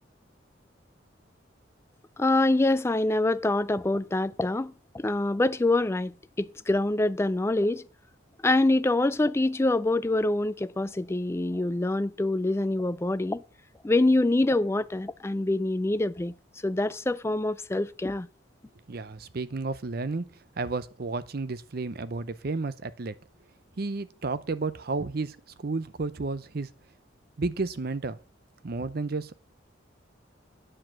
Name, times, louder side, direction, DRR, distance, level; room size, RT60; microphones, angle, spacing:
voice 1, 2.2-7.8 8.4-13.4 13.8-16.3 16.6-18.3, left 2 dB, 15° left, 0.4 m, -25 dB
voice 2, 18.9-23.1 23.8-26.7 27.4-28.2 28.6-29.4, right 3 dB, 50° right, 0.6 m, -32 dB
9.9 x 4.8 x 7.4 m
head